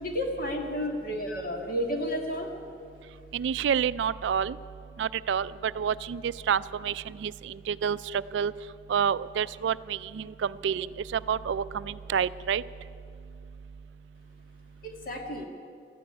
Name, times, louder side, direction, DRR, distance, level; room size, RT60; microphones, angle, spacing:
voice 1, 0.0-2.5 14.8-15.5, equal, 45° left, 3 dB, 1.7 m, -31 dB
voice 2, 3.3-4.6 5.0-8.0 8.3-8.5 8.9-10.9 11.1-12.6, right 7 dB, 65° right, 17 dB, 0.3 m, -28 dB
13.5 x 10.0 x 9.6 m, 2.4 s
head